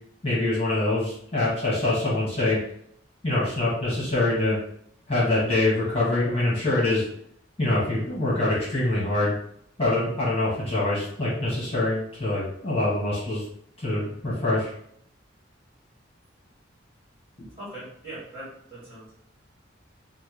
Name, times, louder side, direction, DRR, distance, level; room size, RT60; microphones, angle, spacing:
voice 1, 0.2-2.6 3.2-4.6 5.1-7.0 7.6-9.3 9.8-13.4 13.8-14.7 17.4-17.5, left 2 dB, 30° left, -7 dB, 1.1 m, -24 dB
voice 2, 17.6-19.2, right 1 dB, 25° right, -11 dB, 1.5 m, -41 dB
4.2 x 2.0 x 3.1 m, 0.67 s
head